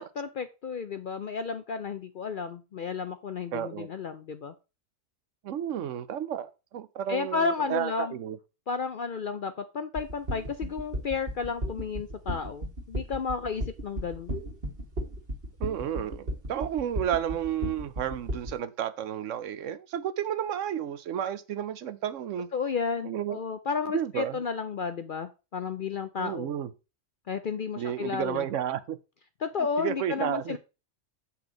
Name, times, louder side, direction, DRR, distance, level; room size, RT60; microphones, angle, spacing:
voice 1, 0.0-4.5 7.1-8.1 8.7-14.3 22.5-26.5 27.3-28.4 29.4-30.6, left 5 dB, 55° left, 0.6 m, -32 dB
voice 2, 3.5-3.9 5.4-8.4 15.6-22.5 23.0-23.4 23.9-24.4 26.2-26.7 27.8-29.0 29.8-30.6, right 10 dB, 70° right, 1.0 m, -32 dB
sound 1, 9.9-18.5, equal, 45° right, 1.7 m, -34 dB
7.9 x 5.7 x 3.9 m
omnidirectional pair, 1.4 m